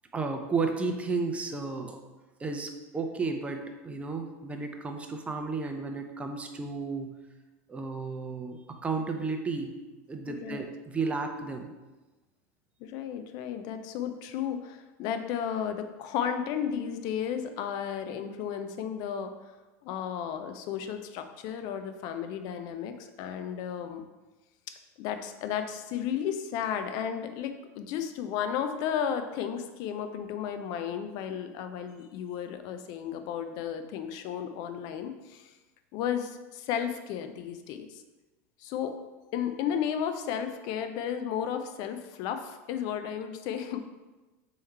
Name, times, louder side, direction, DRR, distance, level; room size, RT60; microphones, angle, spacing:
voice 1, 0.1-2.0 2.4-7.1 7.7-9.7 10.1-11.7, right 4 dB, 15° right, 4 dB, 0.5 m, -33 dB
voice 2, 10.3-10.6 12.8-19.3 19.8-24.0 25.0-35.5 35.9-38.0 38.6-39.0 39.3-43.8, left 8 dB, 55° left, 8 dB, 0.5 m, -33 dB
3.5 x 3.1 x 4.4 m, 1.2 s
hypercardioid pair, 105°, 8 cm